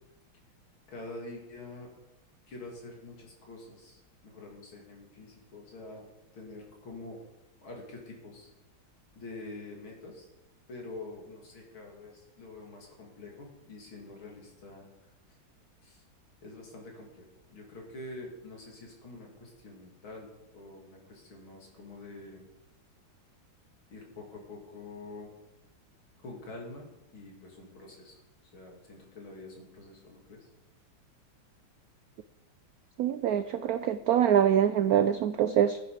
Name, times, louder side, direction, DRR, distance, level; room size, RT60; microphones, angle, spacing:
voice 1, 0.9-1.9 2.5-6.1 6.3-7.2 7.6-8.5 9.2-10.3 10.7-14.9 15.8-16.0 16.4-22.4 23.9-25.3 26.2-26.9 27.1-28.2 28.5-30.5, left 2 dB, 75° left, 0 dB, 3.7 m, -46 dB
voice 2, 33.0-35.8, right 9 dB, 85° right, 12 dB, 0.8 m, -24 dB
15.0 x 10.0 x 5.1 m, 0.95 s
omnidirectional pair, 2.2 m